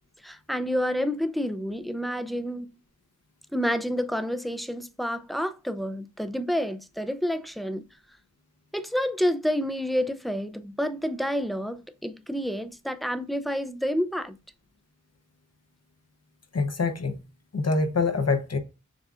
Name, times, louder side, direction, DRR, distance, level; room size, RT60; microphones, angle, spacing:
voice 1, 0.2-2.7 3.5-7.8 8.7-14.4, equal, ahead, 0.4 m, -29 dB
voice 2, 16.5-17.2 17.5-18.6, left 3 dB, 55° left, 0.8 m, -25 dB
7.1 x 2.4 x 2.4 m
wide cardioid pair, 45°, 31 cm